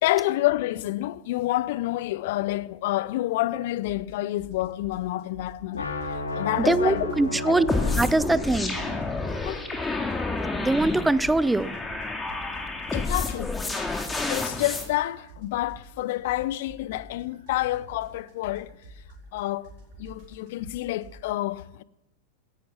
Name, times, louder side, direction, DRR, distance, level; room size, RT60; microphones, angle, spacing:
voice 1, 0.0-7.6 9.4-9.6 12.1-12.2 12.9-13.6 14.2-18.8 19.3-19.7 20.0-21.8, left 16 dB, 50° left, 0.5 m, -28 dB
sound 1, 3.8-4.1 4.4-6.3 6.6-8.5 8.7-10.7 10.9-15.0 15.3-21.2, right 3 dB, 45° right, 4.1 m, -47 dB
sound 2, 5.7-11.7, left 1 dB, 75° left, 2.6 m, -35 dB
voice 2, 6.6-7.7 8.0-8.8 10.5-11.8, right 2 dB, 5° right, 0.6 m, -23 dB
sound 3, 7.7-14.9, left 3 dB, 10° left, 2.2 m, -29 dB
17.0 x 11.0 x 5.9 m
figure-of-eight pair, 90°, 0 cm